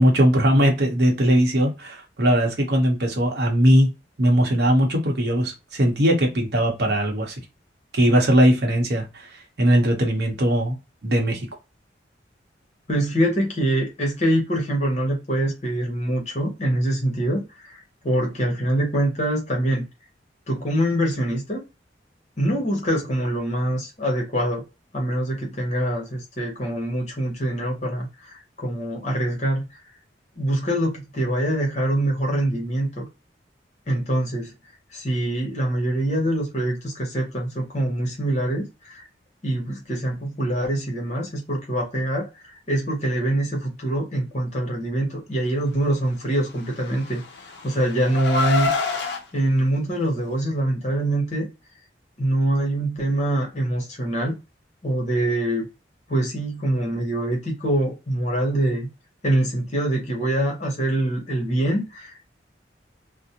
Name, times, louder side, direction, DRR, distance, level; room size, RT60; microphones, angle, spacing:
voice 1, 0.0-3.9 4.2-7.4 7.9-9.3 9.6-10.8 11.0-11.5, equal, 60° right, 0.8 m, -19 dB
voice 2, 12.9-19.8 20.5-21.6 22.4-24.6 24.9-29.7 30.4-33.1 33.9-34.5 34.9-39.0 39.4-42.3 42.7-47.2 47.6-48.7 49.3-51.5 52.2-54.3 54.8-55.7 56.1-58.9 59.2-62.4, right 1 dB, 40° left, 0.9 m, -24 dB
Car, 46.7-49.2, left 4 dB, 65° left, 0.4 m, -26 dB
2.4 x 2.0 x 2.8 m
head